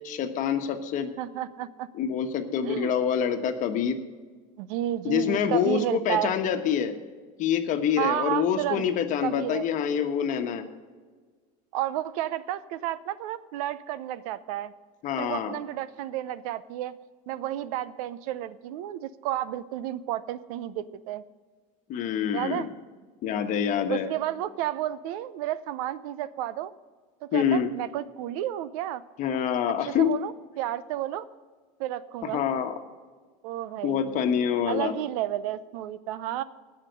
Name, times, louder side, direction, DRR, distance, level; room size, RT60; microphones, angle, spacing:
voice 1, 0.0-1.1 1.9-4.0 5.0-7.0 7.4-10.7 15.0-15.6 21.9-22.7 23.2-24.1 27.3-27.7 29.2-30.1 32.3-32.8 33.8-34.9, left 8 dB, 45° left, 7 dB, 1.3 m, -26 dB
voice 2, 1.2-1.9 2.6-2.9 4.6-6.3 8.0-8.9 9.2-9.6 11.7-14.7 15.2-17.0 17.3-21.2 22.3-22.7 23.9-26.7 27.2-29.0 29.8-31.3 31.8-32.4 33.4-34.3 34.7-36.4, right 12 dB, 75° right, 17 dB, 0.6 m, -31 dB
17.5 x 5.8 x 6.6 m, 1.5 s
supercardioid pair, 130°, 19 cm